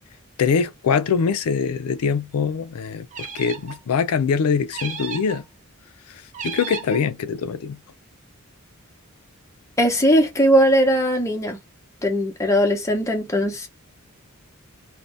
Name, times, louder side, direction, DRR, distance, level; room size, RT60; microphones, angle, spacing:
voice 1, 0.4-5.4 6.1-7.8, left 6 dB, 75° left, 0.4 m, -23 dB
sound 1, 3.1-3.8 4.7-5.4 6.3-7.0, right 6 dB, 35° right, 0.6 m, -34 dB
voice 2, 9.8-11.6 12.0-13.7, equal, 15° left, 0.7 m, -19 dB
2.6 x 2.1 x 3.2 m
head